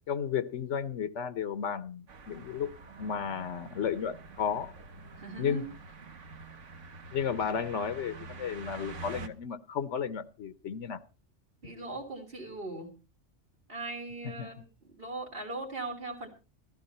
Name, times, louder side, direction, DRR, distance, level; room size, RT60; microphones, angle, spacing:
voice 1, 0.1-2.7 3.0-4.7 5.4-5.6 7.1-11.0 14.2-14.5, left 7 dB, 80° left, 13 dB, 1.2 m, -33 dB
sound 1, 2.1-9.3, right 3 dB, 90° right, 1.5 m, -47 dB
voice 2, 5.1-5.7 11.6-12.9 13.7-16.3, right 2 dB, 50° right, 1 dB, 3.4 m, -39 dB
15.0 x 13.0 x 4.3 m, 0.34 s
omnidirectional pair, 1.2 m